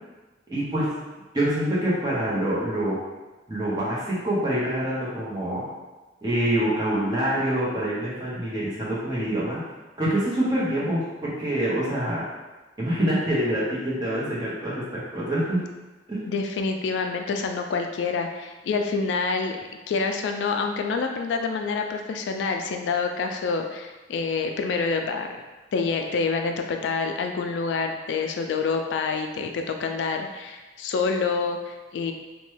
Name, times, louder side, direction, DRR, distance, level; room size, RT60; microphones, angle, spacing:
voice 1, 0.5-0.9 1.3-3.0 3.5-5.6 6.2-9.6 10.0-12.2 12.8-15.6 16.1-16.2, right 1 dB, 25° right, -8 dB, 0.9 m, -25 dB
voice 2, 16.3-19.6 19.9-25.4 25.7-32.1, left 4 dB, 75° left, 4 dB, 0.3 m, -27 dB
3.0 x 2.2 x 3.1 m, 1.2 s
head